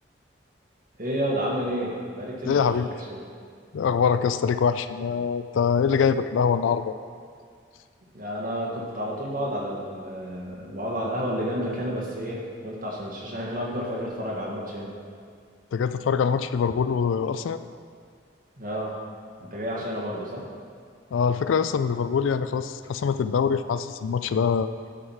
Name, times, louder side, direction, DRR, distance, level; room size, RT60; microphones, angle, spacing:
voice 1, 1.0-3.2 8.1-14.9 18.6-18.9 19.4-20.4, equal, 45° right, -4 dB, 1.6 m, -30 dB
voice 2, 2.4-2.9 3.7-7.0 15.7-17.6 21.1-24.7, left 6 dB, 80° left, 12 dB, 0.3 m, -24 dB
9.7 x 4.6 x 5.6 m, 2.1 s
head